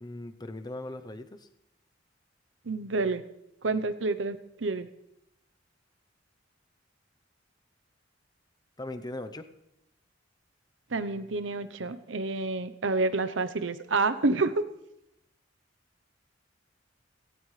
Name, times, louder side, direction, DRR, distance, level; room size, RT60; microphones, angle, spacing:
voice 1, 0.0-1.5 8.8-9.5, left 1 dB, 20° left, 9 dB, 0.8 m, -39 dB
voice 2, 2.7-3.2 3.6-4.9 10.9-14.6, right 3 dB, 80° right, 12 dB, 0.8 m, -28 dB
17.0 x 17.0 x 3.3 m, 0.84 s
head